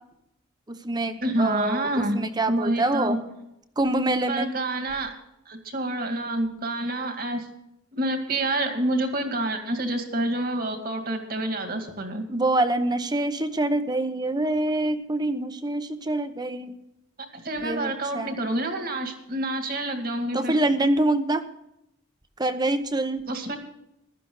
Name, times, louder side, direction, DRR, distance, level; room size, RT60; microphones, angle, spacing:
voice 1, 0.7-3.2 3.8-4.5 12.3-16.8 17.6-18.3 20.3-21.4 22.4-23.2, right 2 dB, 20° right, 9 dB, 0.9 m, -25 dB
voice 2, 1.2-2.2 2.5-3.2 4.3-5.1 5.5-7.5 7.9-12.3 17.3-20.6 23.3-23.6, right 1 dB, 50° right, 5 dB, 2.2 m, -28 dB
15.5 x 12.0 x 3.9 m, 0.82 s
head